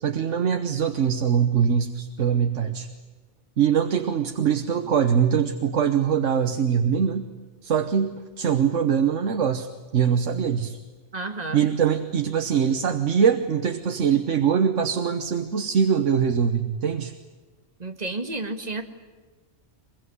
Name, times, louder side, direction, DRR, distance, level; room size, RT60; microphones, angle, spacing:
voice 1, 0.0-2.9 3.6-7.3 7.6-9.7 9.9-10.8 11.5-17.1, right 7 dB, 80° right, 7 dB, 1.5 m, -23 dB
voice 2, 11.1-11.7 17.8-18.9, right 2 dB, 35° right, 6 dB, 2.1 m, -31 dB
24.0 x 22.0 x 9.6 m, 1.4 s
omnidirectional pair, 1.2 m